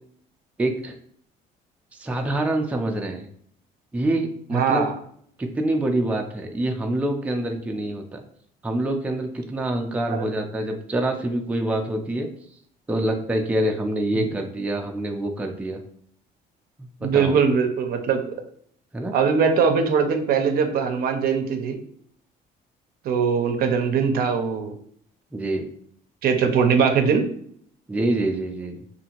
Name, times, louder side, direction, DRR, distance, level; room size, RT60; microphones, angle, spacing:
voice 1, 0.6-0.9 1.9-3.2 3.9-4.9 5.4-8.2 8.6-12.3 12.9-15.8 16.8-16.9 17.1-17.4 18.9-19.1 25.3-25.7 27.9-28.8, right 1 dB, 10° right, 2 dB, 0.4 m, -26 dB
voice 2, 4.5-5.0 10.1-10.3 14.1-14.3 17.0-18.2 19.1-21.8 23.0-24.7 26.2-27.3, right 6 dB, 65° right, 6 dB, 0.5 m, -21 dB
2.8 x 2.5 x 2.8 m, 0.63 s
cardioid pair, 110°, 17 cm